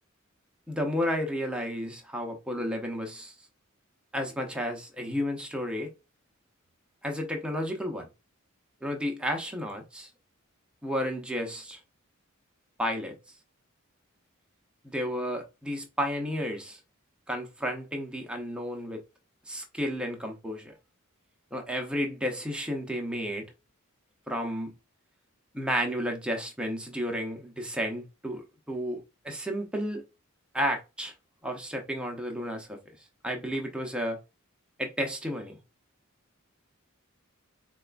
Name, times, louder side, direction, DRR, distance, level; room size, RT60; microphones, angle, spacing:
voice 1, 0.7-3.3 4.1-5.9 7.0-8.1 8.8-10.1 10.8-11.8 12.8-13.1 14.8-16.8 17.3-19.0 19.5-20.7 21.5-23.5 24.3-24.7 25.5-30.0 30.5-31.1 31.4-32.8 33.2-34.2 34.8-35.6, equal, 5° right, 0.6 m, -32 dB
4.1 x 2.2 x 2.4 m
head